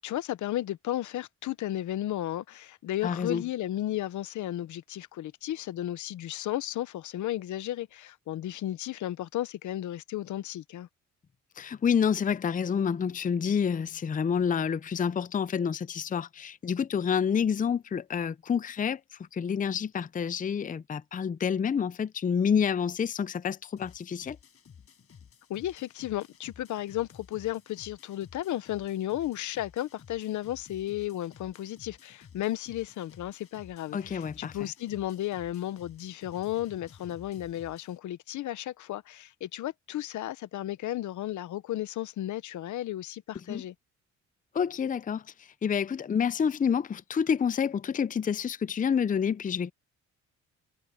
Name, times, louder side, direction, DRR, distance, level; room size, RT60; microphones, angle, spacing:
voice 1, 0.0-10.9 25.5-43.7, left 13 dB, 75° left, 1.0 m, -34 dB
voice 2, 3.0-3.4 11.6-24.4 33.9-34.7 43.5-43.6 44.5-49.7, left 7 dB, 25° left, 0.6 m, -28 dB
sound 1, 23.8-38.0, left 7 dB, 50° left, 5.9 m, -54 dB
cardioid pair, 90°, 30 cm